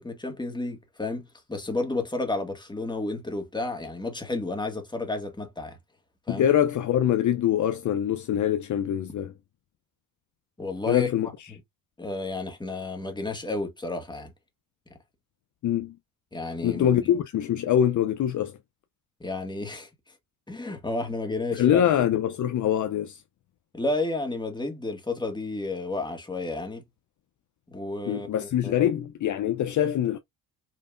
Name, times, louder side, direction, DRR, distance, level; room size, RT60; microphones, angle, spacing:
voice 1, 0.0-5.8 6.3-6.5 10.6-11.1 11.5-11.6 12.0-14.3 16.3-17.0 19.2-19.9 20.5-21.8 23.7-26.8 27.7-28.8, left 2 dB, 10° left, 1.8 m, -31 dB
voice 2, 6.3-9.3 10.9-11.5 15.6-16.0 16.6-18.6 21.6-23.2 28.1-30.2, left 10 dB, 50° left, 0.6 m, -24 dB
5.7 x 3.3 x 2.5 m
cardioid pair, 85°, 38 cm